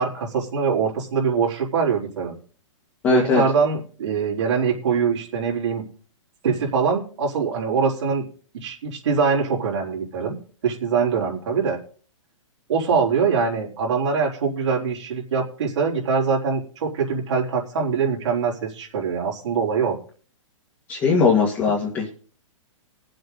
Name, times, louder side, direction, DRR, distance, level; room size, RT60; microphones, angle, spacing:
voice 1, 0.0-2.3 3.1-5.9 6.4-8.2 8.5-10.4 10.6-11.8 12.7-20.0, right 5 dB, 65° right, -3 dB, 4.1 m, -23 dB
voice 2, 3.0-3.4 20.9-22.1, left 5 dB, 15° left, -5 dB, 2.1 m, -19 dB
22.0 x 7.8 x 4.1 m, 0.43 s
hypercardioid pair, 170°, 17 cm